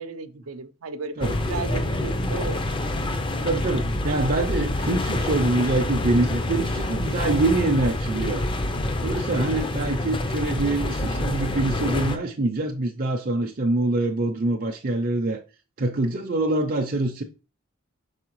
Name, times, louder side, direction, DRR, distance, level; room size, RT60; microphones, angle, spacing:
voice 1, 0.0-2.8, right 4 dB, 90° right, 0.7 m, -35 dB
sound 1, 1.2-12.2, left 1 dB, 25° left, 0.5 m, -27 dB
voice 2, 3.4-8.5 9.0-15.4 15.8-17.2, right 2 dB, 45° right, 0.6 m, -25 dB
6.4 x 4.8 x 3.1 m
head